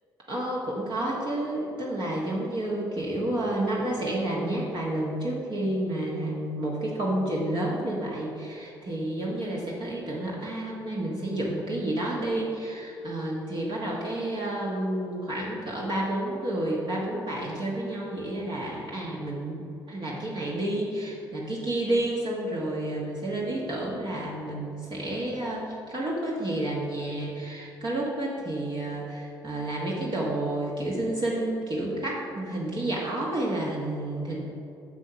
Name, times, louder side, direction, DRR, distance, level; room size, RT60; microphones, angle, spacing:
voice 1, 0.3-34.4, right 1 dB, 45° right, -4 dB, 1.5 m, -30 dB
6.8 x 6.1 x 5.8 m, 2.8 s
figure-of-eight pair, 45°, 11 cm